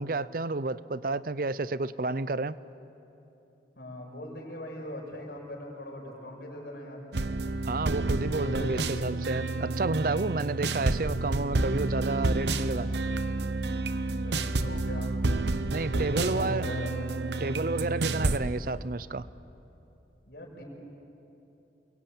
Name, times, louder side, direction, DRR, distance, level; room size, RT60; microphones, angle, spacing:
voice 1, 0.0-2.5 7.6-12.9 15.7-16.7 17.4-19.3, right 3 dB, 50° right, 0.6 m, -30 dB
voice 2, 3.8-7.0 8.2-8.9 14.2-15.1 15.9-16.9 20.3-20.6, left 1 dB, 65° left, 6.5 m, -40 dB
sound 1, 7.1-18.4, right 2 dB, 80° right, 0.9 m, -29 dB
29.0 x 22.5 x 8.9 m
head